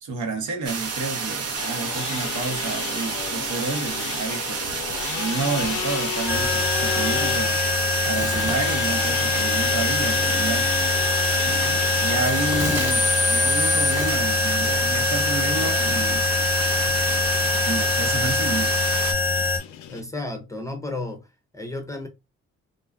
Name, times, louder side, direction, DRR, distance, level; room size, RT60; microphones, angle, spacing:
voice 1, 0.0-4.8 5.1-10.7 11.4-16.3 17.6-18.8, right 4 dB, 75° right, 0.9 m, -30 dB
sound 1, 0.6-19.1, right 5 dB, 55° right, 0.8 m, -30 dB
sound 2, 1.5-20.0, left 10 dB, 85° left, 0.5 m, -34 dB
sound 3, 6.3-19.6, left 4 dB, 5° right, 0.9 m, -23 dB
voice 2, 19.9-22.1, left 2 dB, 10° left, 0.6 m, -33 dB
2.6 x 2.3 x 2.3 m
cardioid pair, 90°, 30 cm